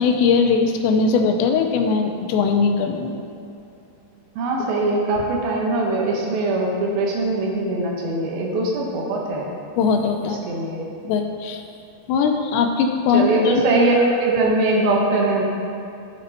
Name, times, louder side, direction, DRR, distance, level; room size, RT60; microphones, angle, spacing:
voice 1, 0.0-3.1 9.8-10.4 11.0-11.6 12.1-13.5, left 5 dB, 85° left, 4 dB, 2.8 m, -20 dB
voice 2, 4.4-9.5 10.2-10.9 13.1-15.4, right 2 dB, 75° right, -1 dB, 2.3 m, -21 dB
13.5 x 5.1 x 2.7 m, 2.6 s
omnidirectional pair, 5.2 m